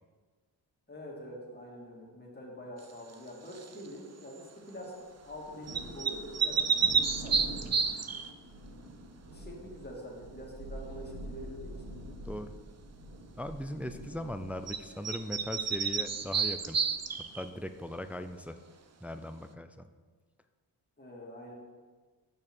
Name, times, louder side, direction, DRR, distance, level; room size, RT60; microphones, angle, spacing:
voice 1, 0.9-5.0 5.2-7.7 9.3-11.8 21.0-21.5, equal, 20° left, -3 dB, 2.2 m, -45 dB
sound 1, 3.5-3.9 5.7-8.3 14.7-14.8 15.0-17.5, right 5 dB, 35° right, 0.6 m, -30 dB
Thunder, 5.2-18.4, right 1 dB, 70° right, 1.5 m, -47 dB
voice 2, 13.4-16.8 17.3-18.6 19.0-19.9, left 1 dB, 5° right, 9 dB, 0.3 m, -39 dB
6.5 x 6.1 x 4.4 m, 1.4 s
supercardioid pair, 50°, 46 cm